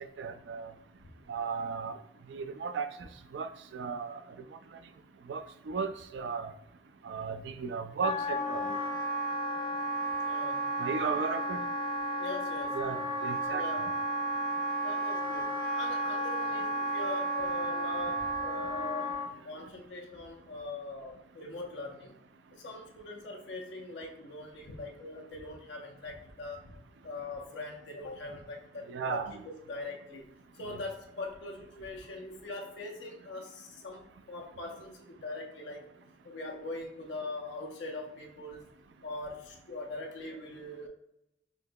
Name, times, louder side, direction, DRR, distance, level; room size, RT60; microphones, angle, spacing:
voice 1, 0.2-0.7 1.3-2.0 2.3-2.9 3.3-4.2 5.3-6.5 7.1-8.8 10.8-11.6 12.7-13.6 28.9-29.3 30.7-30.8, right 5 dB, 75° right, 10 dB, 0.3 m, -35 dB
Wind instrument woodwind instrument, 8.0-19.3, right 1 dB, 30° left, 0.3 m, -33 dB
voice 2, 10.2-10.7 12.2-12.8 13.5-13.9 14.8-19.2 19.4-22.1 22.5-26.8 27.0-35.9 36.2-38.7 39.0-40.9, left 2 dB, 80° left, -1 dB, 0.7 m, -42 dB
5.5 x 2.8 x 2.2 m, 0.82 s
head